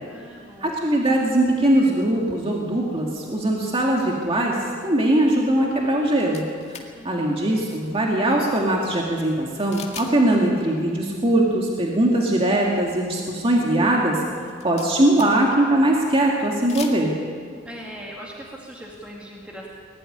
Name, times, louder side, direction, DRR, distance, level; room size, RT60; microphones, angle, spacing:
voice 1, 0.1-0.8 6.9-7.4 17.6-19.7, equal, 5° right, -3 dB, 2.2 m, -40 dB
voice 2, 0.6-4.6 4.8-6.8 7.0-14.2 14.6-17.1, right 1 dB, 30° right, -1 dB, 2.0 m, -21 dB
sound 1, 6.3-6.9 9.7-10.1 10.4-10.5 14.4-15.5 16.5-17.0, left 6 dB, 35° left, 2.0 m, -38 dB
20.5 x 12.5 x 10.0 m, 2.1 s
head